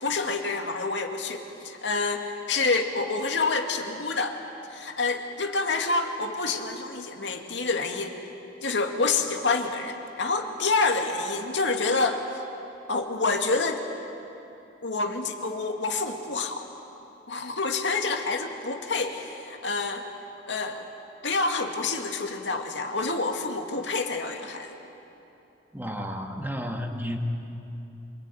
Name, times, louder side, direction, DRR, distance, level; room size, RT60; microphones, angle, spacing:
voice 1, 0.0-4.4 4.7-8.1 8.6-12.2 12.9-13.8 14.8-16.7 17.3-20.0 20.5-20.8 21.2-24.8, left 3 dB, 75° left, 4 dB, 2.3 m, -28 dB
voice 2, 25.7-27.2, equal, 10° right, 3 dB, 1.7 m, -32 dB
27.0 x 22.0 x 9.5 m, 2.9 s
head